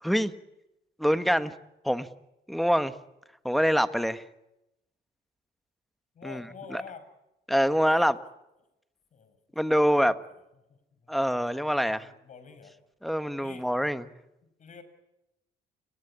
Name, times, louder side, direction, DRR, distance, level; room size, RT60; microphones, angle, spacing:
voice 1, 0.0-0.3 1.0-1.5 1.8-2.1 2.5-2.9 3.4-4.2 6.2-6.4 6.7-6.8 7.5-8.2 9.5-10.1 11.1-12.1 13.0-14.0, equal, ahead, 11 dB, 1.3 m, -25 dB
voice 2, 6.1-7.1 9.1-9.6 10.0-10.2 10.7-11.5 11.9-12.8 13.4-13.7 14.4-14.8, left 6 dB, 45° left, 11 dB, 5.5 m, -48 dB
29.5 x 19.0 x 10.0 m, 0.92 s
cardioid pair, 110°, 17 cm